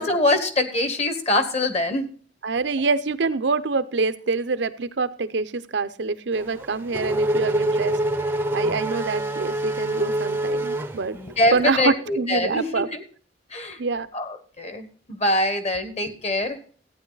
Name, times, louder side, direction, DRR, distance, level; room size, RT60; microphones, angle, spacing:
voice 1, 0.0-2.1 11.1-13.0 13.5-13.8 14.1-16.6, left 1 dB, 35° left, 9 dB, 1.3 m, -24 dB
voice 2, 2.4-8.0 8.5-11.2 11.5-12.9 13.8-14.1, right 4 dB, 75° right, 13 dB, 0.7 m, -25 dB
Race car auto racing / Accelerating revving vroom, 6.4-11.6, right 1 dB, 10° right, 0.6 m, -26 dB
14.5 x 9.3 x 4.0 m, 0.44 s
head